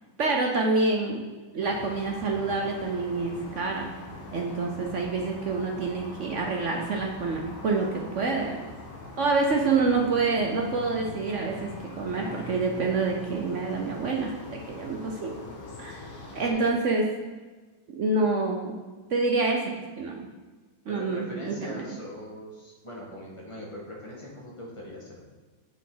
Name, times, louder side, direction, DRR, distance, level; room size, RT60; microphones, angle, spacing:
voice 1, 0.2-1.2 1.5-3.9 4.3-8.6 9.2-11.7 12.0-15.3 15.8-16.0 16.3-17.0 18.0-18.8 19.1-20.3 20.9-21.8, right 3 dB, 70° right, 1 dB, 0.7 m, -27 dB
sound 1, 1.6-16.5, left 2 dB, 80° left, 2.3 m, -42 dB
voice 2, 16.2-16.8 20.9-25.2, left 1 dB, 15° left, -3 dB, 1.3 m, -41 dB
7.4 x 5.9 x 3.9 m, 1.3 s
omnidirectional pair, 2.2 m